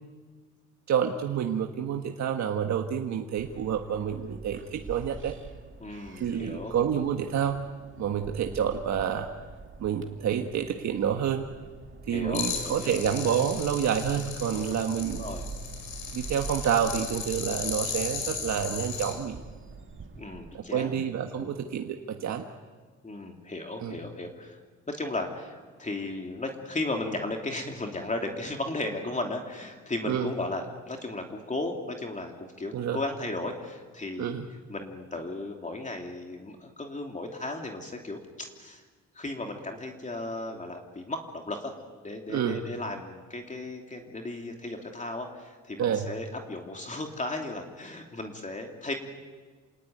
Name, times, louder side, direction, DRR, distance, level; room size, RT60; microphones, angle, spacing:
voice 1, 0.9-5.3 6.2-7.6 8.0-9.3 9.8-11.4 12.1-15.3 16.1-19.4 20.5-22.4 23.8-24.0 30.0-30.3 32.7-33.0 34.2-34.5 42.3-42.6 45.8-46.1, right 8 dB, 65° right, 4 dB, 1.6 m, -28 dB
sound 1, 3.4-20.5, right 4 dB, 40° right, 2.6 m, -45 dB
voice 2, 5.8-6.7 12.1-13.0 14.5-14.7 15.1-15.4 19.9-21.0 21.3-21.6 23.0-24.6 24.9-34.4 34.7-38.2 38.6-38.8 39.1-41.7 42.0-48.9, left 2 dB, 25° left, 2 dB, 3.0 m, -35 dB
sound 2, 12.3-19.1, left 6 dB, 75° left, 5.5 m, -36 dB
28.0 x 18.5 x 9.4 m, 1.4 s
cardioid pair, 90°, 30 cm